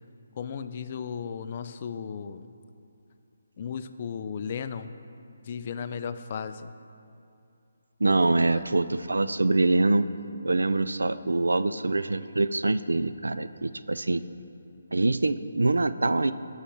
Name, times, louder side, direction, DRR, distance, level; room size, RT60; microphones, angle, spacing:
voice 1, 0.4-2.5 3.6-4.9 5.5-6.7 8.5-8.6, left 7 dB, 40° left, 10 dB, 0.4 m, -35 dB
voice 2, 8.0-10.1 10.4-14.2 14.9-16.3, right 2 dB, 80° right, 13 dB, 0.3 m, -24 dB
13.0 x 5.6 x 4.7 m, 2.6 s
figure-of-eight pair, 150°, 0 cm